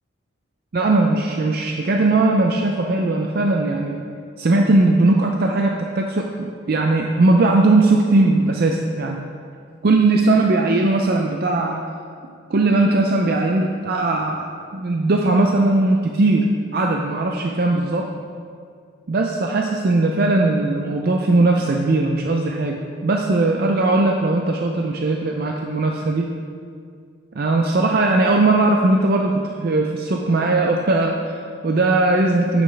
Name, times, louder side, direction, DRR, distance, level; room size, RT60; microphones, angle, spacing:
voice 1, 0.7-4.0 4.4-9.2 9.8-11.8 12.5-14.4 14.7-16.4 16.7-18.1 19.1-26.3 27.3-32.6, right 2 dB, 50° right, 1 dB, 0.4 m, -19 dB
8.7 x 7.5 x 3.3 m, 2.2 s
head